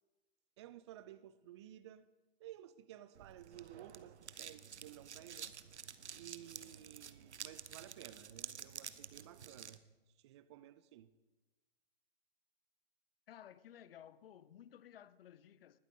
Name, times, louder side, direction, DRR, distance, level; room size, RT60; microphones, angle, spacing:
voice 1, 0.6-2.0 2.4-5.5 5.8-11.1, right 12 dB, 25° right, 0.4 m, -55 dB
sound 1, 3.2-9.8, right 8 dB, 85° right, 0.8 m, -50 dB
voice 2, 13.3-15.8, left 10 dB, 60° left, 0.7 m, -56 dB
20.0 x 8.4 x 3.7 m
hypercardioid pair, 135°, 33 cm